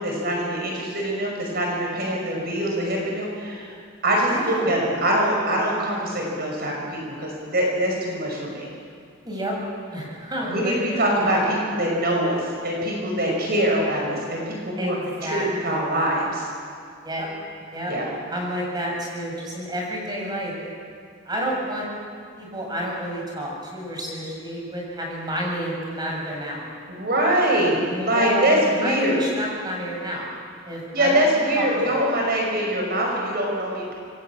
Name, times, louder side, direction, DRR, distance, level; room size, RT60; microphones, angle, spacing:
voice 1, 0.0-3.7 4.0-8.7 10.5-15.0 15.2-16.5 17.9-18.1 26.9-29.2 30.9-33.9, right 1 dB, 50° right, -1 dB, 5.6 m, -23 dB
voice 2, 4.3-4.7 9.3-9.5 9.9-11.0 14.8-15.8 17.0-17.3 17.7-17.9 18.3-20.7 21.3-21.9 22.4-26.6 27.9-30.3 30.7-31.2 31.5-32.0, equal, 20° right, -2 dB, 6.9 m, -30 dB
26.5 x 21.0 x 8.8 m, 2.3 s
head